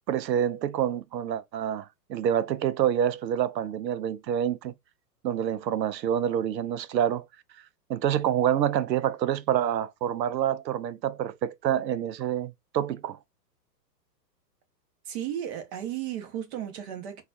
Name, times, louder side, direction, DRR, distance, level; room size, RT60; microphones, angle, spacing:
voice 1, 0.1-4.7 5.2-7.2 7.9-13.2, right 10 dB, 90° right, 0.6 m, -27 dB
voice 2, 15.1-17.2, right 10 dB, 40° right, 1.0 m, -34 dB
3.9 x 2.4 x 2.4 m
hypercardioid pair, 125°, 49 cm